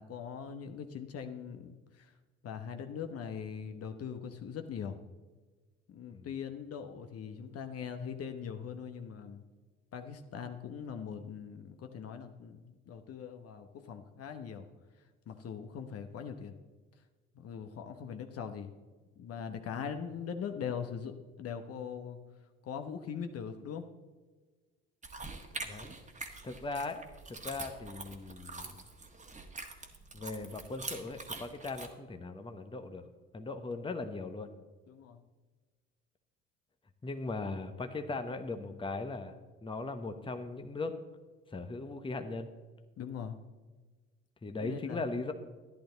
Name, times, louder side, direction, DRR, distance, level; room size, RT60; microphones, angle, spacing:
voice 1, 0.0-2.1 2.4-5.0 5.9-9.4 9.9-14.7 15.3-16.5 17.3-18.7 19.2-22.2 22.6-23.8 34.9-35.2 43.0-43.4 44.6-45.0, left 7 dB, 45° left, 6 dB, 1.1 m, -41 dB
sound 1, 25.0-31.9, right 3 dB, 20° right, 1.6 m, -45 dB
voice 2, 25.6-25.9 26.4-27.0 27.3-28.8 30.1-33.0 33.3-34.5 37.0-39.3 39.6-41.0 41.5-42.5 44.4-45.3, left 3 dB, 15° left, 7 dB, 1.0 m, -39 dB
11.5 x 10.5 x 4.0 m, 1.3 s
hypercardioid pair, 65°, 32 cm